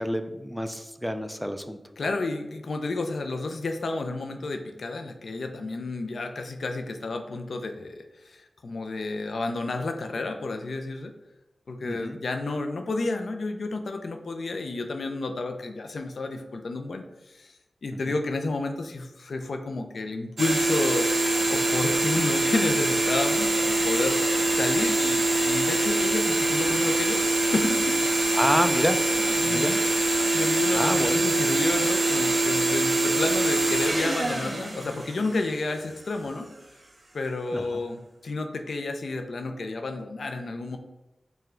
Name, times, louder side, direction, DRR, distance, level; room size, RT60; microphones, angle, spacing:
voice 1, 0.0-1.8 11.8-12.2 28.3-29.0 29.3-29.7 30.7-31.2 37.5-37.8, equal, ahead, 8 dB, 0.3 m, -28 dB
voice 2, 2.0-11.1 11.7-17.6 17.8-21.1 21.5-24.2 24.5-28.0 29.1-29.8 30.3-36.5 37.1-40.8, left 3 dB, 90° left, 5 dB, 0.3 m, -31 dB
sound 1, 20.4-35.6, right 2 dB, 60° right, 0.8 m, -24 dB
4.5 x 2.2 x 3.7 m, 1.0 s
wide cardioid pair, 90°, 0 cm